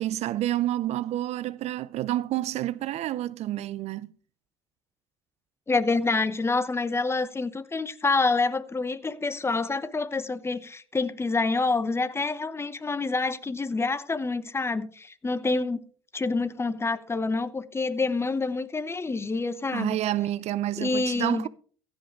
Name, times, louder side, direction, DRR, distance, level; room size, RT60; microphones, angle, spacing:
voice 1, 0.0-4.1 19.7-21.5, right 14 dB, 55° right, 0.5 m, -29 dB
voice 2, 5.7-15.8 16.1-20.0 20.8-21.4, left 3 dB, 20° left, 0.9 m, -27 dB
15.5 x 5.3 x 4.9 m
hypercardioid pair, 75°, 13 cm